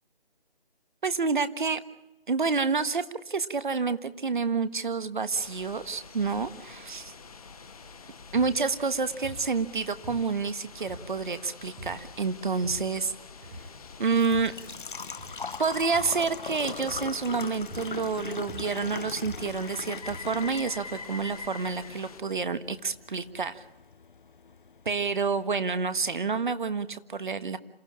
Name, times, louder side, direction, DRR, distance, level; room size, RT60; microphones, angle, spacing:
voice 1, 1.0-1.8 2.3-7.1 8.3-13.1 14.0-14.5 15.6-23.6 24.8-27.6, right 4 dB, 55° right, 12 dB, 1.5 m, -28 dB
sound 1, 5.3-22.2, left 5 dB, 35° left, 1.4 m, -46 dB
sound 2, 8.3-8.6 9.2-9.5 10.0-10.5 10.9-11.4 11.8-12.1 12.5-13.0 13.4-13.8 14.1-14.6 15.1-15.5 15.9-16.2 16.9-17.2 17.7-18.1 18.3-20.4, right 1 dB, 10° right, 1.1 m, -45 dB
Engine / Trickle dribble / Fill (with liquid), 13.5-25.4, left 5 dB, 55° left, 0.9 m, -41 dB
27.5 x 15.0 x 8.7 m, 0.97 s
figure-of-eight pair, 160°, 30 cm